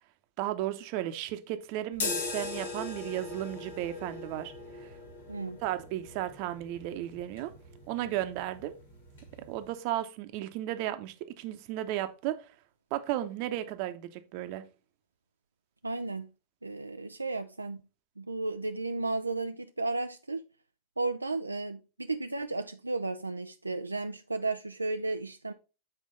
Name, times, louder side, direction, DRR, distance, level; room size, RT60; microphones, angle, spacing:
voice 1, 0.4-4.9 5.6-7.5 7.9-8.7 9.5-12.5 12.9-14.6, right 13 dB, 45° right, 0.8 m, -34 dB
sound 1, 1.9-9.7, left 3 dB, 60° left, 1.6 m, -40 dB
voice 2, 5.3-5.6 15.8-16.3 16.6-17.8 18.2-20.4 21.0-25.5, right 3 dB, 80° right, 0.3 m, -34 dB
8.0 x 4.5 x 3.9 m
figure-of-eight pair, 90°, 0 cm